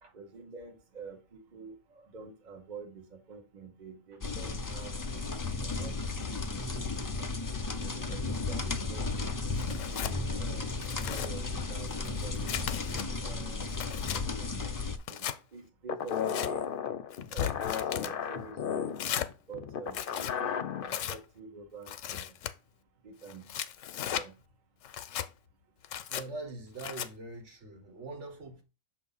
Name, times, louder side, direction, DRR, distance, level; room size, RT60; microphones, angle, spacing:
voice 1, 0.1-5.3 5.6-6.9 7.2-7.3 7.7-10.7 11.1-12.7 13.2-13.7 14.2-14.7 15.1-16.7 17.3-19.0 19.5-22.4 23.0-23.5 24.1-24.4, right 4 dB, 40° right, 1.1 m, -48 dB
sound 1, 4.2-15.0, left 3 dB, 35° left, 0.3 m, -34 dB
Tearing, 9.6-10.2 10.7-11.3 11.9-13.1 13.5-14.2 15.0-15.4 16.1-16.5 17.1-18.1 19.0-19.3 19.9-20.4 20.9-21.2 21.9-22.5 23.3-24.3 24.8-25.3 25.8-26.2 26.8-27.1, left 10 dB, 90° left, 1.0 m, -36 dB
sound 2, 15.9-21.0, left 8 dB, 55° left, 0.7 m, -34 dB
voice 2, 26.1-28.6, right 3 dB, 70° right, 1.6 m, -43 dB
6.9 x 2.8 x 5.5 m
omnidirectional pair, 1.3 m